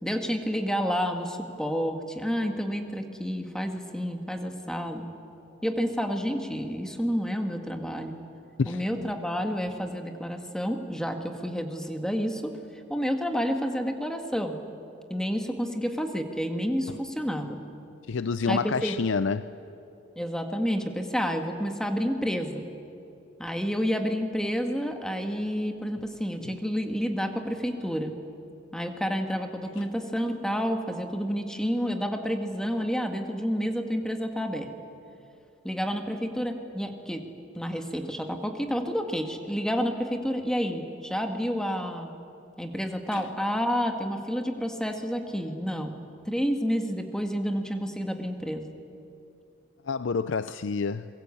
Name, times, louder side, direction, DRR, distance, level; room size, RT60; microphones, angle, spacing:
voice 1, 0.0-5.1 5.6-8.2 8.7-12.5 12.9-14.6 15.1-17.6 18.5-18.9 20.2-22.6 23.4-28.1 28.7-34.7 35.6-37.3 37.5-42.1 42.6-45.9 46.2-48.7, equal, 5° left, 1.8 m, -29 dB
voice 2, 8.6-9.0 18.1-19.5 29.8-29.9 43.1-43.3 49.9-51.1, left 5 dB, 80° left, 0.5 m, -28 dB
26.0 x 22.5 x 8.5 m
head